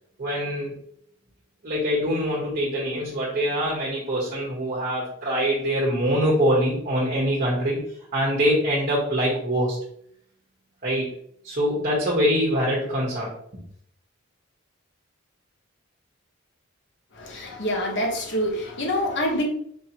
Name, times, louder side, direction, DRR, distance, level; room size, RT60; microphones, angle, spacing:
voice 1, 0.2-0.7 1.6-7.8 8.1-9.8 10.8-11.1 11.4-13.3, equal, 45° right, -5 dB, 1.1 m, -24 dB
voice 2, 17.1-19.4, equal, 60° left, 0 dB, 1.0 m, -26 dB
4.6 x 2.9 x 2.9 m, 0.66 s
head